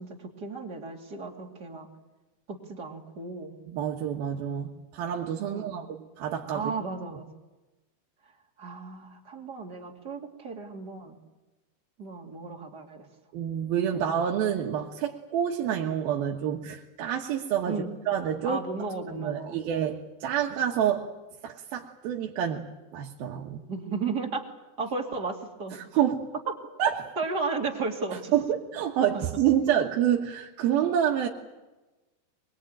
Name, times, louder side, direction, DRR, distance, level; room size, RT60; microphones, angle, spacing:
voice 1, 0.0-1.9 2.5-3.6 5.5-5.9 6.5-7.3 8.6-11.2 12.0-13.1 13.9-14.1 17.7-17.9 18.4-19.6 23.7-24.4 24.8-26.0 27.2-28.3 29.1-29.2, right 4 dB, 30° right, 1 dB, 2.4 m, -34 dB
voice 2, 3.7-5.9 6.2-6.7 13.3-18.6 19.1-21.1 21.4-22.7 22.9-23.6 25.9-26.2 26.8-27.1 28.3-31.3, right 9 dB, 65° right, -1 dB, 3.0 m, -28 dB
23.5 x 22.5 x 9.0 m, 1.1 s
omnidirectional pair, 5.1 m